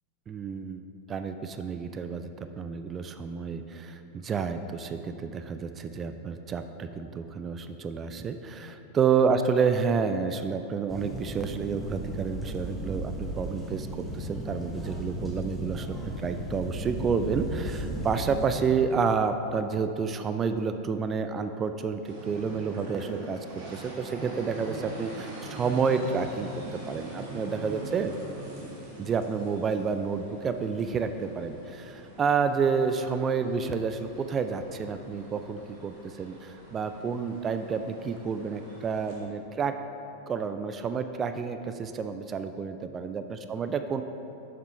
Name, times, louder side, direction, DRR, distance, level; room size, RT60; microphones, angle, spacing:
voice 1, 0.3-28.2 29.0-39.8 40.3-44.0, right 5 dB, 25° right, 9 dB, 0.3 m, -29 dB
sound 1, 10.9-18.5, equal, ahead, 1.1 m, -35 dB
sound 2, 22.0-39.2, right 2 dB, 45° right, 1.7 m, -43 dB
7.2 x 6.0 x 4.6 m, 2.9 s
figure-of-eight pair, 90°, 0 cm